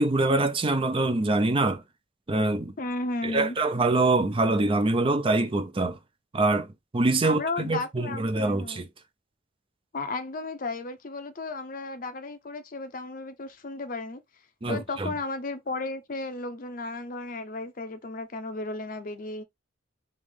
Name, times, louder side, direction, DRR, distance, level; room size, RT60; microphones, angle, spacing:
voice 1, 0.0-1.8 2.3-2.7 3.2-6.0 6.3-6.7 6.9-8.9 14.6-15.1, right 2 dB, 30° right, 0.5 m, -24 dB
voice 2, 2.8-3.6 7.2-8.8 9.9-14.2 14.7-19.4, left 3 dB, 45° left, 0.7 m, -34 dB
3.3 x 3.1 x 3.5 m
head